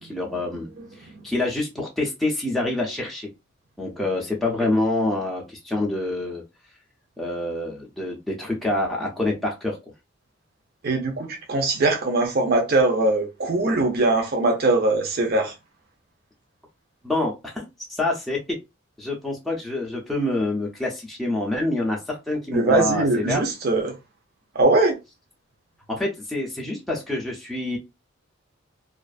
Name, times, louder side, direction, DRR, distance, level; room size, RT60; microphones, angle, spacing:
voice 1, 0.0-0.7 1.0-3.3 3.8-6.4 7.2-9.8 17.0-17.6 17.9-18.4 19.0-23.4 25.9-27.8, left 2 dB, ahead, 0.4 m, -26 dB
voice 2, 10.8-15.5 22.5-23.9 24.5-25.0, right 2 dB, 50° right, 0.6 m, -21 dB
2.4 x 2.4 x 2.3 m
head